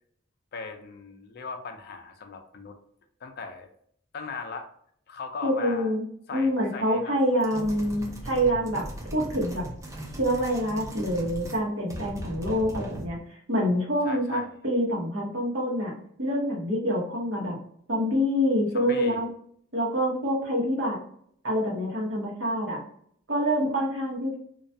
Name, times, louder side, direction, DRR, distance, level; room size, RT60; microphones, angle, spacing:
voice 1, 0.5-2.8 3.2-3.7 4.1-4.7 5.1-5.9 6.3-7.2 14.0-14.5 18.7-19.3, left 4 dB, 50° left, 5 dB, 0.4 m, -38 dB
voice 2, 5.4-6.1 6.3-8.9 9.1-9.6 10.2-15.9 16.2-17.6 17.9-19.3 19.7-21.0 21.4-22.8 23.3-24.4, equal, 65° right, -2 dB, 0.9 m, -26 dB
sound 1, 7.4-11.6 11.9-13.2, equal, 15° right, 0.4 m, -38 dB
2.3 x 2.1 x 2.6 m, 0.65 s
head